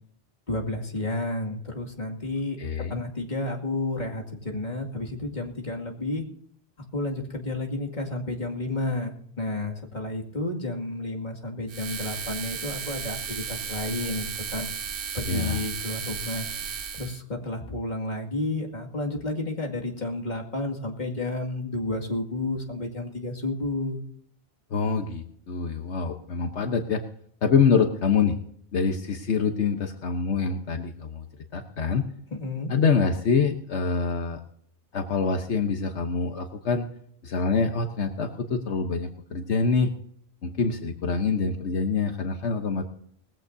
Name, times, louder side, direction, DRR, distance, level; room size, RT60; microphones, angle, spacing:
voice 1, 0.5-2.6 2.9-6.2 6.8-14.7 15.1-16.5 16.9-24.0 32.3-32.7, left 2 dB, 40° left, 0 dB, 2.4 m, -31 dB
voice 2, 2.6-3.0 15.3-15.6 24.7-27.0 27.4-28.4 28.7-31.2 31.5-32.1 32.7-34.4 34.9-36.9 37.2-39.9 40.4-42.8, left 5 dB, 75° left, 5 dB, 1.3 m, -25 dB
sound 1, 11.7-17.2, right 7 dB, 55° right, 1.0 m, -34 dB
20.0 x 15.0 x 2.7 m, 0.67 s
omnidirectional pair, 1.2 m